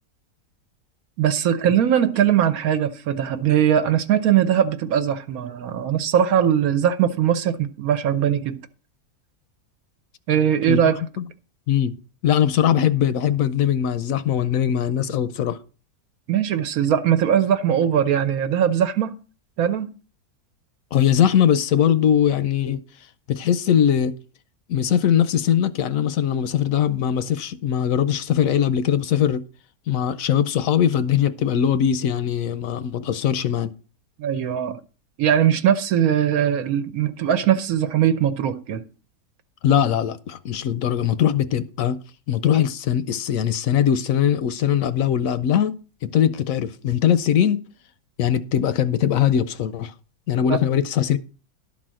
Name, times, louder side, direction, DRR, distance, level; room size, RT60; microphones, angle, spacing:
voice 1, 1.2-8.6 10.3-11.0 16.3-19.1 19.6-19.9 34.2-34.8 35.2-38.8 50.5-50.6, right 9 dB, 70° right, 1.2 m, -20 dB
voice 2, 10.7-11.2 11.7-11.9 12.2-15.6 20.9-22.8 23.3-24.1 24.7-29.4 29.9-33.7 39.6-42.0 42.3-47.6 48.2-49.9 50.3-51.2, left 9 dB, 70° left, 0.9 m, -21 dB
11.5 x 4.1 x 7.4 m
omnidirectional pair, 1.6 m